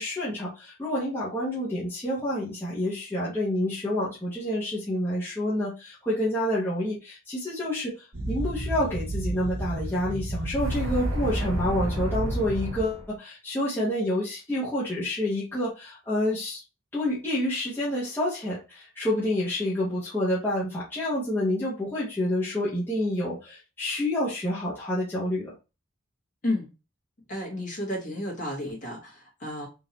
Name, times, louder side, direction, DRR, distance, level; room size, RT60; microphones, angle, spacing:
voice 1, 0.0-16.6 16.9-25.5, left 1 dB, 10° left, -8 dB, 1.0 m, -28 dB
sound 1, 8.1-13.1, right 1 dB, 75° right, 1.0 m, -30 dB
voice 2, 27.3-29.7, left 1 dB, 40° left, -3 dB, 1.7 m, -32 dB
3.7 x 2.7 x 2.9 m, 0.29 s
head